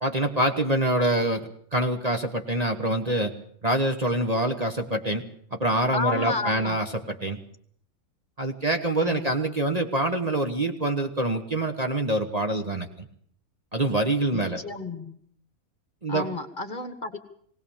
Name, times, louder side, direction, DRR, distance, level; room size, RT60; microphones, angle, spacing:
voice 1, 0.0-3.3 3.6-5.2 5.5-7.4 8.4-13.1 13.7-14.6 16.0-16.3, right 1 dB, 30° right, 5 dB, 1.3 m, -25 dB
voice 2, 5.9-6.8 9.0-9.3 14.3-15.1 16.1-17.2, left 3 dB, 35° left, 9 dB, 1.5 m, -31 dB
20.5 x 18.5 x 7.1 m, 0.63 s
omnidirectional pair, 1.5 m